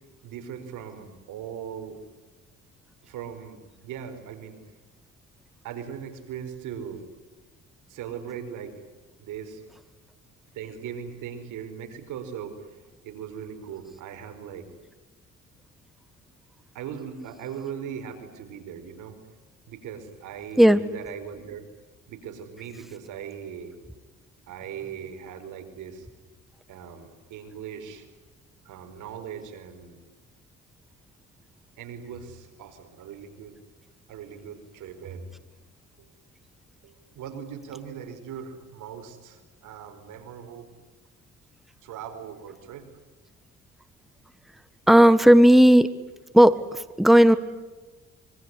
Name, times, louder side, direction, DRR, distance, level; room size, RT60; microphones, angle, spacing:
voice 1, 0.2-2.0 3.0-4.6 5.6-7.0 7.9-8.7 9.2-9.6 10.5-14.7 16.7-19.2 19.7-21.6 22.1-23.8 24.5-26.1 26.7-28.1 28.6-30.0 31.8-33.6 34.1-35.3 36.0-36.1 36.8-40.7 41.8-42.9, right 8 dB, 85° right, 7 dB, 4.9 m, -39 dB
voice 2, 44.9-45.9 46.3-47.4, equal, ahead, 13 dB, 1.4 m, -15 dB
25.5 x 23.5 x 9.8 m, 1.2 s
cardioid pair, 90°, 30 cm